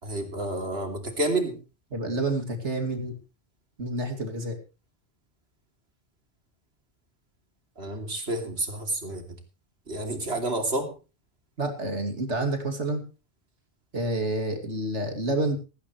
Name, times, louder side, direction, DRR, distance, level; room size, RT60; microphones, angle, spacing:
voice 1, 0.0-1.6 7.8-9.2 9.9-10.9, right 2 dB, 65° right, 5 dB, 3.3 m, -29 dB
voice 2, 1.9-3.1 3.8-4.6 11.6-13.0 13.9-15.6, right 2 dB, 85° right, 5 dB, 3.0 m, -28 dB
16.5 x 16.0 x 3.2 m, 0.32 s
omnidirectional pair, 1.1 m